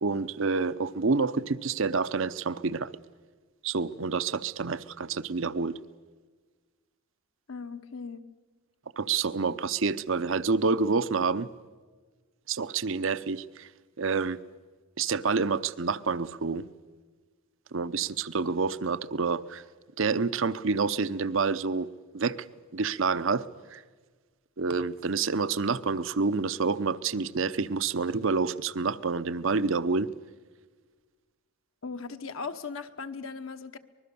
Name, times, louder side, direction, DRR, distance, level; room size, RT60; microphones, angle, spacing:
voice 1, 0.0-2.9 3.6-5.8 9.0-11.5 12.5-13.7 14.0-14.4 15.0-16.6 17.7-19.6 20.0-21.9 22.1-22.5 22.7-23.4 23.7-23.8 24.6-30.1, right 4 dB, 60° right, 16 dB, 0.7 m, -28 dB
voice 2, 7.5-8.2 31.8-33.8, left 4 dB, 65° left, 8 dB, 1.1 m, -38 dB
25.0 x 21.0 x 6.9 m, 1.4 s
head